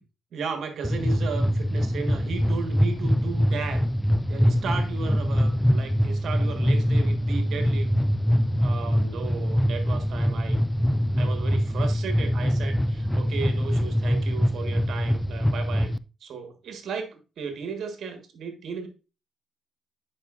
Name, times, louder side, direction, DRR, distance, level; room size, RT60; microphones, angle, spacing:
voice 1, 0.3-3.9 4.3-7.9 8.6-10.6 11.1-15.9 16.2-18.9, right 5 dB, 65° right, 1.4 m, -35 dB
sound 1, 0.8-16.0, equal, 5° left, 0.3 m, -24 dB
9.2 x 5.2 x 2.5 m
cardioid pair, 90°, 0 cm